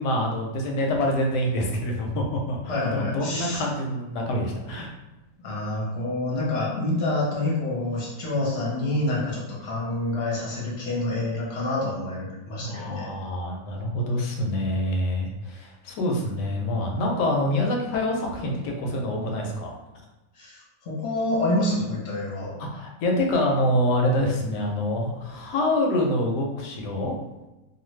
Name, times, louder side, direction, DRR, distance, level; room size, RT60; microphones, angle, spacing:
voice 1, 0.0-4.9 12.6-19.7 22.6-27.2, left 1 dB, 85° left, 1 dB, 1.2 m, -26 dB
voice 2, 2.7-3.6 5.4-13.1 20.3-22.5, left 2 dB, 45° left, -5 dB, 1.0 m, -27 dB
2.6 x 2.4 x 3.1 m, 1.0 s
omnidirectional pair, 1.8 m